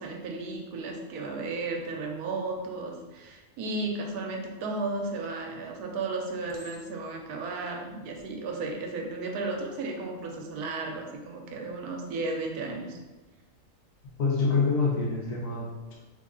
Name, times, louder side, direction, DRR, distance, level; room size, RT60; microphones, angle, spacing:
voice 1, 0.0-13.0, right 3 dB, 80° right, 2 dB, 1.1 m, -34 dB
Chink clink, 6.5-7.3 8.0-8.3, right 1 dB, 65° right, 0.5 m, -51 dB
voice 2, 14.2-15.9, left 4 dB, 80° left, -3 dB, 1.4 m, -26 dB
3.2 x 2.3 x 3.7 m, 1.2 s
omnidirectional pair, 1.6 m